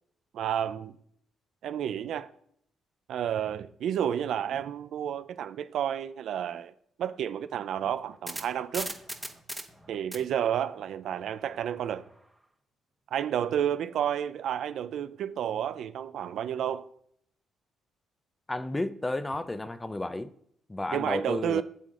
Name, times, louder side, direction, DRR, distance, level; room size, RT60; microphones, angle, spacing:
voice 1, 0.3-1.0 1.6-2.3 3.1-6.7 7.0-8.9 9.9-12.0 13.1-16.9 20.9-21.6, right 9 dB, 70° right, 0.5 m, -31 dB
sound 1, 7.9-12.1, right 1 dB, 5° right, 1.1 m, -40 dB
voice 2, 18.5-20.3 20.7-21.6, left 2 dB, 15° left, 0.5 m, -32 dB
8.2 x 7.4 x 3.8 m
cardioid pair, 90°, 0 cm